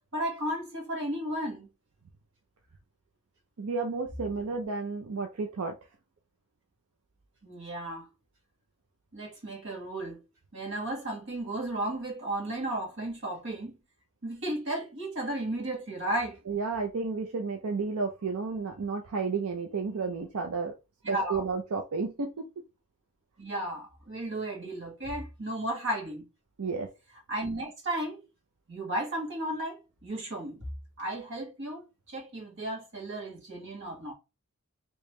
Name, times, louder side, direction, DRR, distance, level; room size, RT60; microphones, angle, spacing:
voice 1, 0.1-1.7 7.4-8.1 9.1-10.2 10.5-13.8 14.2-16.4 21.0-21.4 23.4-26.2 27.3-28.2 28.7-30.6 31.0-34.1, right 1 dB, 55° right, 1.6 m, -34 dB
voice 2, 3.6-5.8 16.5-20.7 21.1-22.5 26.6-26.9, right 4 dB, 85° right, 0.6 m, -32 dB
3.4 x 3.0 x 3.1 m
head